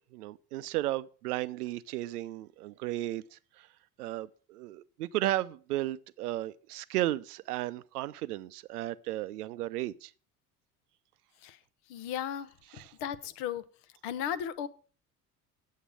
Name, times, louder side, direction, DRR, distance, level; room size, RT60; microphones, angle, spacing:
voice 1, 0.0-3.7 4.0-10.1 12.7-12.9, right 15 dB, 80° right, 0.6 m, -34 dB
voice 2, 11.9-13.6 14.0-14.7, left 9 dB, 60° left, 0.8 m, -36 dB
8.4 x 7.2 x 4.9 m
figure-of-eight pair, 60°, 45 cm